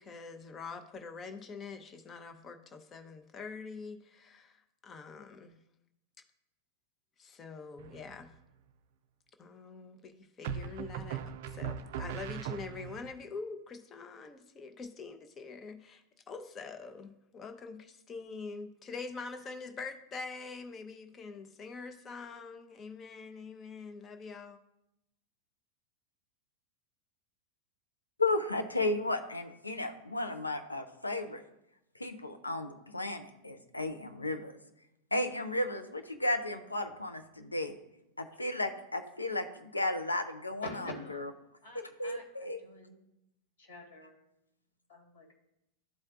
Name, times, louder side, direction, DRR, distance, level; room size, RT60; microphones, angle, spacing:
voice 1, 0.0-5.6 7.2-8.3 9.4-24.6, left 4 dB, 25° left, 7 dB, 0.7 m, -45 dB
sound 1, 7.8-8.3 10.4-13.1, right 8 dB, 55° right, 0.4 m, -39 dB
voice 2, 28.2-31.4 32.0-34.5 35.1-37.8 38.2-41.3 41.7-42.6, left 2 dB, 80° left, 7 dB, 0.6 m, -34 dB
voice 3, 40.6-41.2 41.6-43.0 43.6-44.2 44.9-45.3, left 2 dB, 60° left, 1 dB, 2.0 m, -47 dB
12.0 x 4.3 x 2.4 m, 0.86 s
figure-of-eight pair, 90°, 0 cm